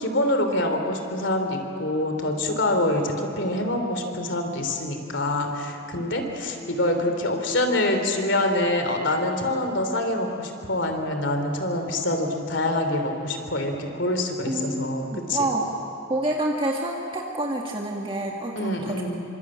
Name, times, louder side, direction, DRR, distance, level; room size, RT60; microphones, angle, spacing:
voice 1, 0.0-15.5 18.5-19.2, left 1 dB, 60° left, 5 dB, 3.3 m, -25 dB
voice 2, 14.5-15.7 16.1-19.0, right 1 dB, 25° right, -1 dB, 1.8 m, -28 dB
25.5 x 25.5 x 8.8 m, 2.8 s
head